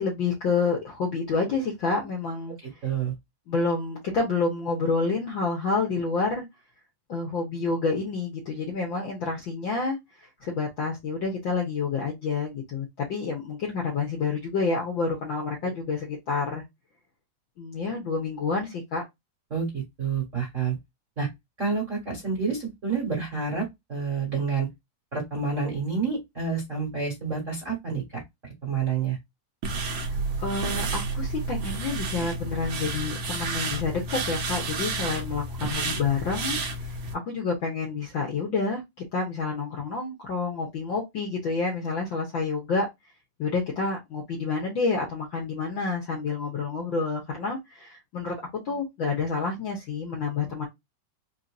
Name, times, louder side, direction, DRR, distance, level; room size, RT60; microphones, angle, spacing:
voice 1, 0.0-2.6 3.5-6.4 7.1-16.6 17.6-19.0 30.0-37.0 37.2-38.8 39.1-42.9 43.4-48.4 48.6-50.7, left 4 dB, 55° left, 1.4 m, -28 dB
voice 2, 2.8-3.1 15.6-15.7 19.5-20.7 21.2-21.3 21.6-24.7 25.1-29.2, right 5 dB, 35° right, 1.4 m, -29 dB
sound 1, 29.6-37.1, right 3 dB, 65° right, 1.3 m, -31 dB
4.5 x 2.8 x 2.5 m
omnidirectional pair, 3.4 m